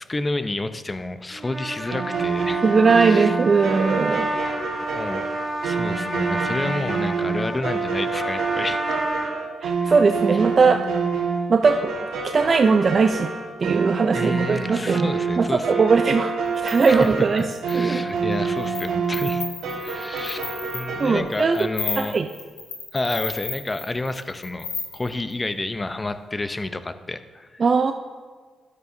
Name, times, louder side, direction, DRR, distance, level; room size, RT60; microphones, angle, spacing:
voice 1, 0.0-2.6 2.9-3.4 4.9-5.3 5.6-8.8 9.1-9.2 14.1-16.0 16.9-19.5 19.8-20.4 20.7-22.2 22.9-24.7 24.9-27.6, left 2 dB, 25° left, 10 dB, 0.7 m, -30 dB
Trumpet, 1.3-9.3, right 1 dB, 15° right, 1.7 m, -30 dB
sound 1, 1.9-21.2, right 5 dB, 80° right, 1.5 m, -27 dB
voice 2, 2.6-4.3 9.6-10.9 11.5-11.9 12.2-13.3 13.6-15.1 15.4-16.3 16.6-17.4 17.7-18.0 21.0-21.7 22.0-22.3 27.6-27.9, right 4 dB, 50° right, 7 dB, 0.4 m, -19 dB
sound 2, 16.5-17.8 18.3-18.9 19.1-25.3, left 5 dB, 75° left, 2.2 m, -33 dB
12.5 x 9.6 x 2.7 m, 1.5 s
supercardioid pair, 50°, 0 cm